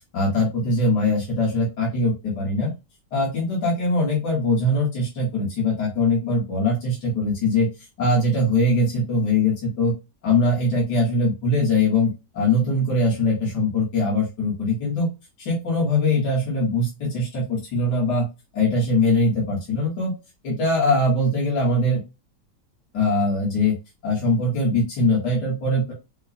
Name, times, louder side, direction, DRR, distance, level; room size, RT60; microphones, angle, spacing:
voice 1, 0.1-2.7 3.1-7.7 8.0-9.9 10.2-15.1 15.4-18.3 18.5-20.1 20.4-22.0 22.9-23.8 24.0-25.9, left 2 dB, 75° left, -4 dB, 2.0 m, -22 dB
5.4 x 2.1 x 2.6 m, 0.26 s
omnidirectional pair, 1.8 m